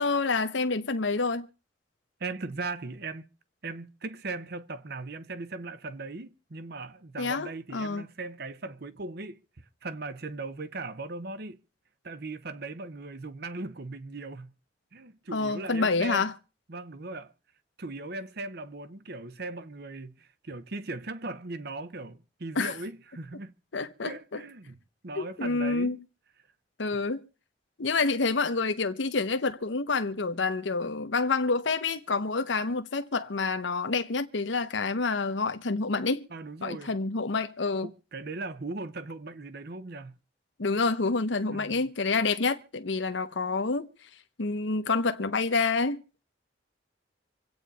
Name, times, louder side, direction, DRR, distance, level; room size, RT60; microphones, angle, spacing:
voice 1, 0.0-1.5 7.2-8.0 15.3-16.3 22.6-22.7 23.7-24.4 25.2-26.0 26.8-27.3 27.8-36.3 36.6-37.9 40.6-43.9 44.4-46.0, left 4 dB, 80° left, 0.9 m, -28 dB
voice 2, 2.2-3.3 3.6-9.4 9.8-11.6 12.0-14.6 14.9-16.3 16.7-17.3 17.8-23.5 24.0-26.0 26.9-27.0 36.3-36.9 37.8-40.2 41.5-41.8, right 3 dB, 55° right, 0.9 m, -38 dB
26.0 x 8.8 x 4.1 m
head